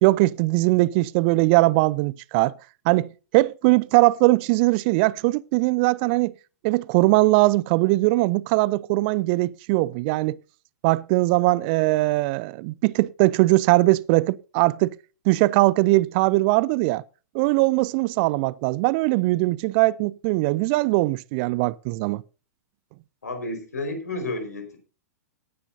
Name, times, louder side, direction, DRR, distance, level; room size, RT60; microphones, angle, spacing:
voice 1, 0.0-2.5 2.9-6.3 6.6-10.4 10.8-14.9 15.3-17.0 17.3-22.2, right 21 dB, 40° right, 0.5 m, -20 dB
voice 2, 23.2-24.8, left 2 dB, 70° left, 4.8 m, -31 dB
18.0 x 10.0 x 2.7 m
figure-of-eight pair, 105°, 9 cm